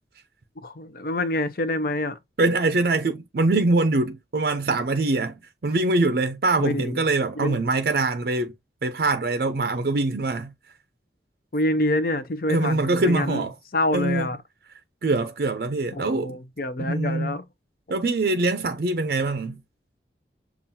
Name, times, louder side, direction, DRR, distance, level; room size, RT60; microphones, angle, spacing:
voice 1, 0.6-2.2 6.6-7.0 7.4-7.6 11.5-13.4 13.7-14.4 15.9-17.5, left 1 dB, 50° left, 0.6 m, -26 dB
voice 2, 2.4-8.5 8.8-10.5 12.5-13.5 13.9-14.3 15.0-16.4 16.8-17.4 17.9-19.6, right 2 dB, 55° right, 0.5 m, -23 dB
7.1 x 2.4 x 2.6 m
head